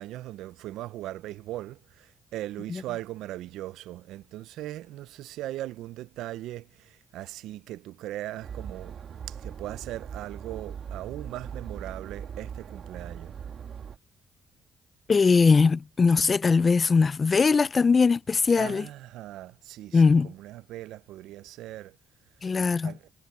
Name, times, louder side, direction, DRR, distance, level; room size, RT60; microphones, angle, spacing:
voice 1, 0.0-9.0 9.3-13.4 18.6-22.0 22.8-23.0, right 15 dB, 90° right, 0.4 m, -39 dB
sound 1, 8.4-14.0, right 7 dB, 55° right, 1.7 m, -40 dB
voice 2, 15.1-18.9 19.9-20.3 22.4-22.9, left 4 dB, 35° left, 0.3 m, -21 dB
cardioid pair, 90°, 0 cm